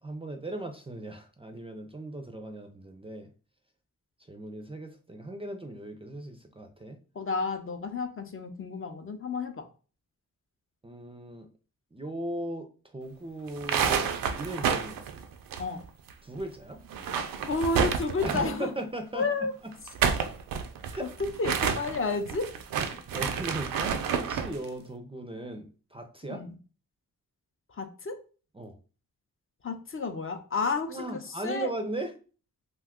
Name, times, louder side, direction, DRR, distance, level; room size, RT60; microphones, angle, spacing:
voice 1, 0.0-3.3 4.3-7.0 10.8-11.5 11.9-15.0 16.2-16.8 18.2-19.7 20.9-21.1 22.8-26.4 28.5-28.8 30.9-32.1, right 2 dB, 15° right, 5 dB, 0.4 m, -38 dB
voice 2, 7.2-9.6 15.6-15.8 17.5-18.7 19.1-19.5 21.4-22.5 26.3-26.5 27.8-28.2 29.6-31.7, left 4 dB, 40° left, 6 dB, 0.5 m, -31 dB
sound 1, 13.5-16.1 16.4-16.5 16.8-18.6 19.7-24.6, right 7 dB, 85° right, 0.5 m, -29 dB
2.6 x 2.3 x 3.6 m, 0.37 s
cardioid pair, 80°, 33 cm